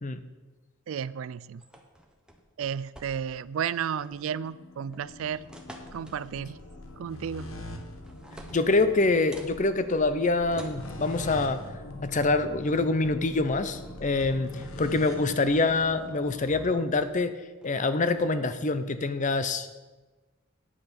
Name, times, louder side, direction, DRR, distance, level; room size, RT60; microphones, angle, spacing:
voice 1, 0.9-1.6 2.6-5.4 5.9-6.6 7.0-7.5, right 8 dB, 75° right, 18 dB, 0.3 m, -33 dB
sound 1, 1.6-3.4 3.8-4.3 4.9-6.4 7.4-7.8 8.0-9.6 10.5-10.9 12.1-12.3 12.7-13.0 13.9-14.0 14.3-14.9 15.3-16.5 17.0-17.3 17.6-18.3, right 1 dB, 5° right, 1.0 m, -50 dB
sound 2, 4.1-16.7, left 1 dB, 85° left, 1.3 m, -42 dB
voice 2, 8.5-11.6 12.0-17.4 17.6-19.8, left 3 dB, 35° left, 11 dB, 0.6 m, -25 dB
9.7 x 8.7 x 5.2 m, 1.2 s
head